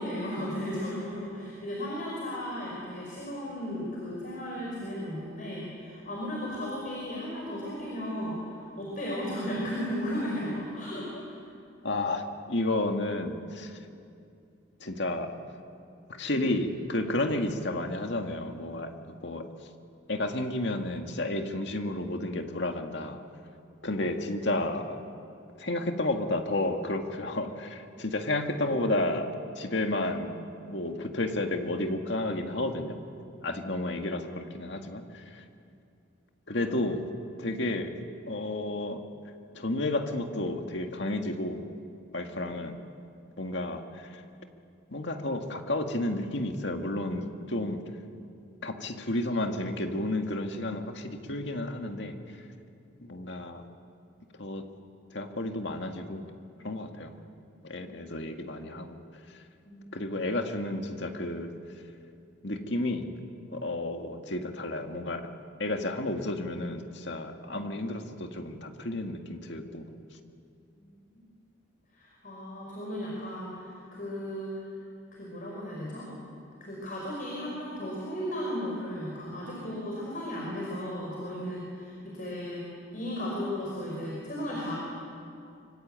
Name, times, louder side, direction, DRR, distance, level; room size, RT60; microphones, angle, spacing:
voice 1, 0.0-11.4 36.5-36.6 37.4-37.6 57.8-58.3 59.7-60.1 70.8-70.9 71.9-74.5 75.2-76.1 76.6-82.6 82.9-84.7, equal, 40° left, -3 dB, 5.2 m, -35 dB
voice 2, 11.8-13.7 14.8-15.4 16.1-19.5 20.1-23.2 23.8-25.0 25.6-30.4 30.7-33.0 33.4-35.4 36.5-37.0 37.4-37.9 38.3-39.0 39.5-41.6 42.1-42.8 43.4-44.1 44.9-47.8 48.6-52.1 53.0-53.6 54.4-54.6 55.1-56.2 56.6-57.1 57.6-59.0 59.9-61.5 62.4-63.1 63.5-65.3 65.6-69.8, left 1 dB, 60° left, 4 dB, 2.1 m, -31 dB
25.0 x 24.5 x 9.0 m, 2.5 s
head